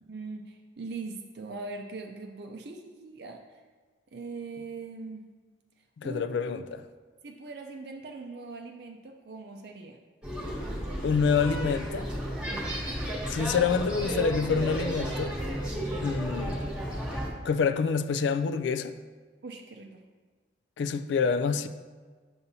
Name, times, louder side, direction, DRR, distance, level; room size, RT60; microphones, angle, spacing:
voice 1, 0.0-3.6 4.1-5.3 6.0-6.4 7.2-10.0 12.5-12.8 19.4-20.0, right 3 dB, 55° right, 0.5 m, -41 dB
voice 2, 6.0-6.6 11.0-12.1 13.3-15.4 16.0-16.6 17.4-18.9 20.8-21.7, left 5 dB, 70° left, 0.3 m, -27 dB
sound 1, 10.2-17.3, right 1 dB, 5° right, 1.1 m, -33 dB
7.1 x 6.9 x 2.7 m
head